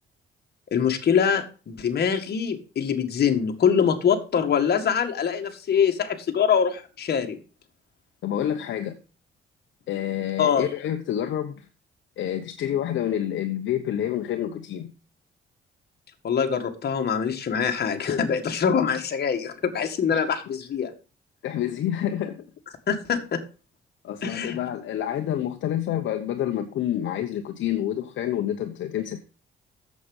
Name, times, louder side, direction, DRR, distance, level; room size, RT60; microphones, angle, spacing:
voice 1, 0.7-7.4 10.4-10.7 16.2-20.9 22.9-23.4 24.2-24.6, left 7 dB, 55° left, 1.9 m, -24 dB
voice 2, 8.2-9.0 9.9-11.7 12.2-14.9 20.1-20.2 21.4-22.5 24.0-29.2, left 11 dB, 70° left, 1.0 m, -28 dB
8.4 x 7.5 x 5.4 m
cardioid pair, 90°, 20 cm